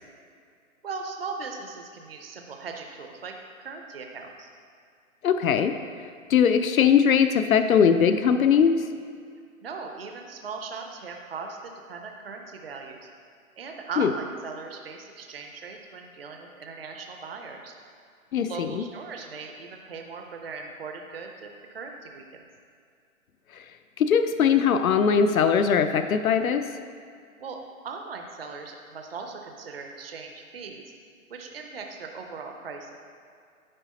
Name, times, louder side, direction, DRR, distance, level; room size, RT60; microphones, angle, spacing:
voice 1, 0.8-4.5 9.6-13.0 13.6-17.7 18.4-22.4 27.4-27.6 27.8-30.9 31.3-32.9, right 4 dB, 45° right, 3 dB, 0.5 m, -39 dB
voice 2, 5.2-5.8 6.3-8.8 14.0-14.1 18.3-18.8 23.5-23.6 24.0-26.7, left 7 dB, 80° left, 9 dB, 0.6 m, -21 dB
9.9 x 4.1 x 4.1 m, 2.2 s
hypercardioid pair, 180°, 42 cm